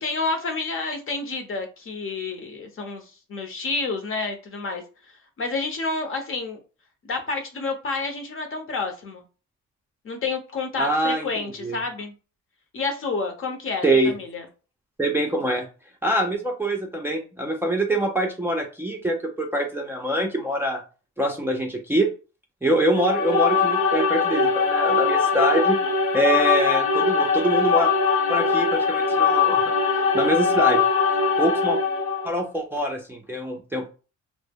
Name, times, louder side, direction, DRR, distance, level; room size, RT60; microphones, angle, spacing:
voice 1, 0.0-4.8 5.4-6.6 7.1-9.2 10.0-12.1 12.7-14.4, left 3 dB, 45° left, 0.8 m, -29 dB
voice 2, 10.8-11.8 13.8-14.1 15.0-15.7 16.0-20.8 21.2-22.1 22.6-25.8 26.1-27.9 28.3-30.8 31.4-31.8 32.2-33.9, right 1 dB, 10° right, 0.4 m, -24 dB
sound 1, 22.9-32.4, left 5 dB, 80° left, 0.7 m, -21 dB
2.1 x 2.0 x 3.4 m
cardioid pair, 90°, 30 cm